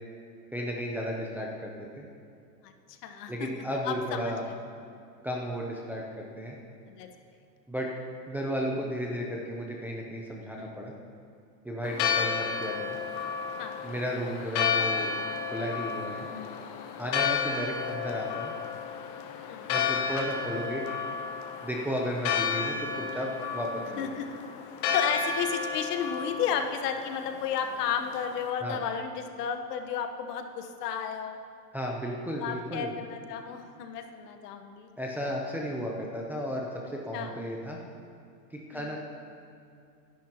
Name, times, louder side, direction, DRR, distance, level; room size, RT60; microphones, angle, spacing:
voice 1, 0.5-2.0 3.3-4.4 5.2-6.6 7.7-7.9 8.3-10.9 11.6-13.0 13.8-15.1 15.5-16.3 17.0-18.5 19.7-20.8 21.6-24.1 28.6-28.8 31.7-32.9 35.0-37.8 38.5-39.0, equal, 5° right, -2 dB, 0.5 m, -34 dB
voice 2, 2.6-4.6 6.9-7.1 10.5-10.9 13.6-13.9 16.3-16.7 19.5-19.8 24.0-24.4 24.9-31.4 32.4-34.9 37.1-37.4 38.7-39.0, left 7 dB, 65° left, 6 dB, 1.2 m, -33 dB
Church bell, 11.8-28.5, left 6 dB, 40° left, 1.0 m, -32 dB
18.5 x 10.5 x 3.0 m, 2.4 s
supercardioid pair, 135°, 50 cm